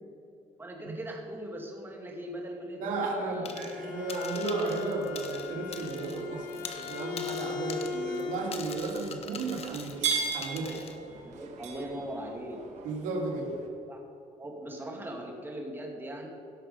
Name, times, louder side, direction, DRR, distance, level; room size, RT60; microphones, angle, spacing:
voice 1, 0.6-3.7 11.2-12.6 13.9-14.0 14.4-16.3, right 1 dB, 15° right, 0 dB, 2.4 m, -40 dB
voice 2, 2.8-10.9 12.8-13.6, right 3 dB, 80° right, 0 dB, 2.5 m, -34 dB
Bowed string instrument, 3.3-8.9, left 5 dB, 85° left, 1.5 m, -38 dB
sound 1, 3.5-3.8 4.1-6.2 6.5-11.0, left 7 dB, 50° left, 1.2 m, -43 dB
sound 2, 4.0-13.7, right 6 dB, 55° right, 1.9 m, -40 dB
16.5 x 6.6 x 5.5 m, 2.6 s
cardioid pair, 115°, 14 cm